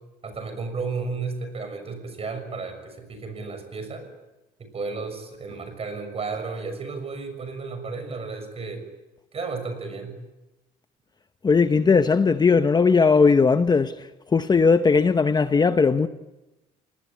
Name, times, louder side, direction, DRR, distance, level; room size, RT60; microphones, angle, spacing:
voice 1, 0.2-4.1 4.6-8.8 9.3-10.2, right 4 dB, 35° right, 6.5 m, -33 dB
voice 2, 11.4-13.9 14.3-16.1, left 5 dB, 25° left, 0.9 m, -18 dB
28.0 x 19.5 x 8.6 m
cardioid pair, 110°, 17 cm